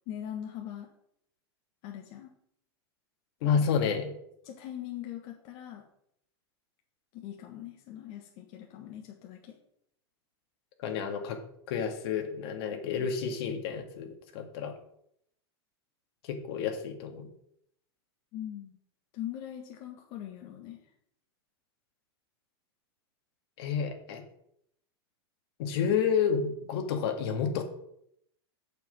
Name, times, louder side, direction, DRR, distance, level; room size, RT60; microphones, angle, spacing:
voice 1, 0.1-0.9 1.8-2.3 3.5-3.7 4.4-5.9 7.1-9.5 12.7-13.1 18.3-18.8 19.1-20.8, left 11 dB, 50° left, 1 dB, 1.4 m, -41 dB
voice 2, 3.4-4.1 10.8-11.4 11.7-14.7 16.2-17.3 23.6-24.2 25.6-27.6, left 7 dB, 65° left, 4 dB, 1.9 m, -30 dB
7.2 x 6.9 x 5.3 m, 0.73 s
hypercardioid pair, 120°, 14 cm